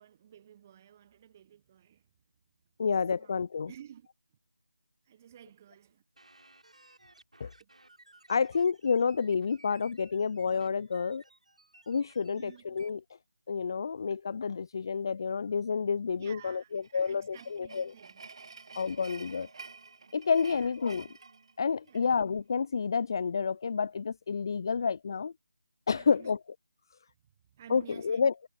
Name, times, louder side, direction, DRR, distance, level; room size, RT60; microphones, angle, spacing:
voice 1, 0.0-2.1 2.8-3.3 3.7-4.1 5.1-6.0 7.6-7.7 12.3-12.8 16.2-18.2 20.4-20.7 21.8-22.0 25.9-26.3 27.5-28.3, right 10 dB, 25° right, 1.0 m, -53 dB
voice 2, 2.8-3.7 7.4-7.5 8.3-11.2 11.9-13.0 13.5-17.9 18.8-19.5 20.1-21.1 21.6-25.3 25.9-26.4 27.7-28.3, left 5 dB, 35° left, 0.3 m, -29 dB
sound 1, 6.2-12.9, right 2 dB, 80° right, 4.6 m, -59 dB
sound 2, 16.7-22.2, right 4 dB, 50° right, 3.6 m, -50 dB
figure-of-eight pair, 160°, 4 cm